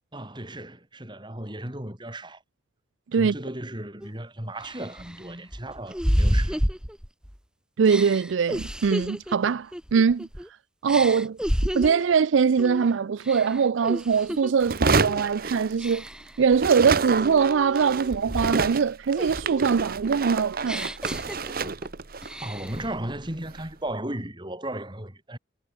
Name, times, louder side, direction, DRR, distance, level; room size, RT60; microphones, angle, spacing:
voice 1, 0.1-2.4 3.1-6.6 22.4-25.4, right 1 dB, 25° right, 4.2 m, -35 dB
sound 1, 4.0-4.1 4.6-7.4 7.8-10.5 10.9-12.1 12.6-12.9 13.2-14.5 14.9-15.3 15.8-16.4 16.9-18.8 19.2-21.9 22.2-22.9, equal, 5° right, 5.3 m, -30 dB
voice 2, 7.8-10.2 10.8-11.4 11.7-16.0 16.4-20.9, right 6 dB, 85° right, 0.4 m, -22 dB
sound 2, 14.6-16.2 16.5-23.7, right 4 dB, 50° right, 1.1 m, -29 dB
head